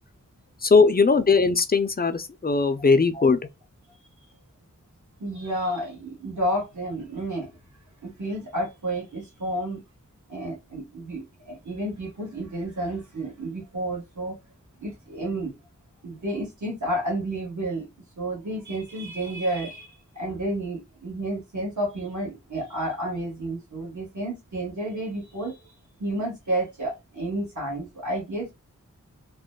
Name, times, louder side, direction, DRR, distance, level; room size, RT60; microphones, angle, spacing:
voice 1, 0.6-3.4, left 4 dB, 30° left, 0.4 m, -19 dB
voice 2, 5.2-7.5 8.0-9.8 10.3-14.4 14.8-15.5 16.0-17.9 18.2-25.6 26.0-28.5, right 1 dB, 70° right, 1.5 m, -31 dB
3.0 x 2.1 x 2.2 m
wide cardioid pair, 55°, 31 cm